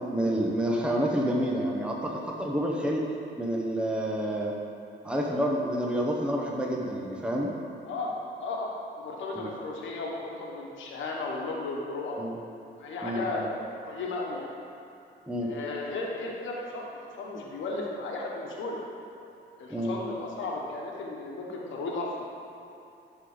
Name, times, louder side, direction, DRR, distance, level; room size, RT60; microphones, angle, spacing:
voice 1, 0.1-3.0 3.4-4.6 5.0-7.5 9.3-9.5 12.2-12.4 13.0-13.5 15.3-15.5 19.7-19.9, equal, 5° right, -2 dB, 1.0 m, -28 dB
voice 2, 8.4-12.2 12.8-13.5 13.8-14.5 15.4-16.8 17.2-18.8 19.6-22.1, left 3 dB, 75° left, -2 dB, 1.3 m, -34 dB
12.0 x 4.0 x 5.1 m, 2.8 s
cardioid pair, 90°, 20 cm